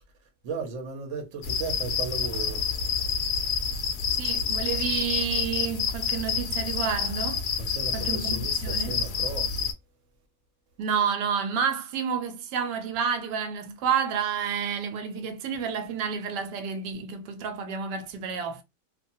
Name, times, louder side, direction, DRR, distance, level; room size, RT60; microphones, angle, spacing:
voice 1, 0.4-2.6 7.6-9.5, right 4 dB, 55° right, 1.0 m, -36 dB
sound 1, 1.4-9.7, left 6 dB, 75° left, 1.0 m, -28 dB
voice 2, 4.1-7.5 7.9-9.0 10.8-18.6, right 7 dB, 75° right, 1.2 m, -30 dB
2.9 x 2.2 x 2.6 m
omnidirectional pair, 1.8 m